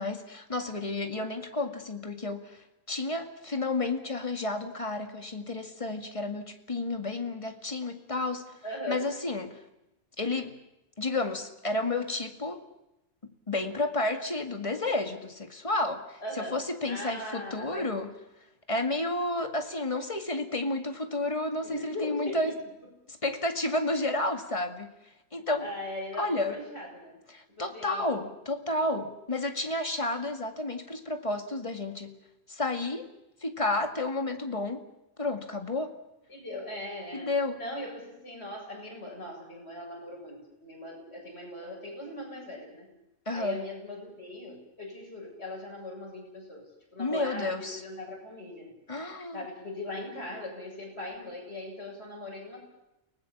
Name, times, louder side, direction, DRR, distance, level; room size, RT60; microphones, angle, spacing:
voice 1, 0.0-8.6 8.9-9.6 10.2-10.5 11.0-12.6 13.2-18.1 18.7-22.5 23.1-24.9 25.3-25.7 26.2-26.6 27.3-32.2 32.5-33.1 33.4-34.8 35.2-35.9 37.1-37.6 43.3-43.6 47.0-47.8 48.9-49.4, left 2 dB, 25° left, 5 dB, 2.1 m, -31 dB
voice 2, 8.6-9.1 16.2-16.6 16.9-17.9 21.6-22.6 25.6-27.2 27.5-28.1 36.3-42.9 43.3-48.8 49.3-52.6, left 1 dB, 55° left, 0 dB, 7.8 m, -40 dB
29.5 x 19.5 x 7.3 m, 0.90 s
omnidirectional pair, 1.3 m